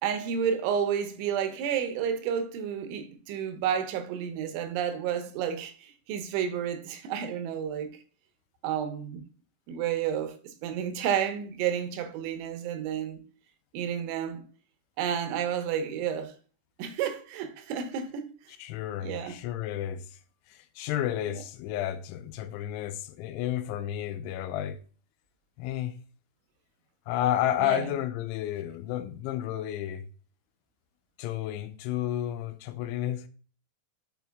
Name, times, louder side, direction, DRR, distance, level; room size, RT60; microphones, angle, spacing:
voice 1, 0.0-7.9 8.6-9.2 9.7-13.2 13.7-14.4 15.0-16.3 16.8-18.3 19.0-19.4 21.3-21.4 27.6-27.9, right 8 dB, 85° right, 3.2 m, -31 dB
voice 2, 18.6-20.0 20.5-24.8 25.6-26.0 27.1-30.0 31.2-33.3, left 12 dB, 90° left, 3.0 m, -31 dB
7.0 x 4.5 x 3.4 m
omnidirectional pair, 5.3 m